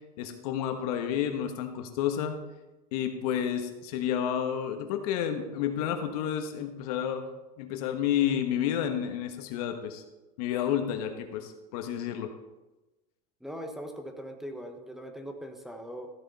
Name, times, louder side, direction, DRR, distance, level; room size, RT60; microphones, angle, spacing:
voice 1, 0.2-2.4 2.9-7.3 7.6-10.0 10.4-12.3, left 9 dB, 75° left, 6 dB, 1.3 m, -30 dB
voice 2, 13.4-16.1, equal, ahead, 5 dB, 1.0 m, -40 dB
13.5 x 7.3 x 4.2 m, 1.1 s
supercardioid pair, 130°, 20 cm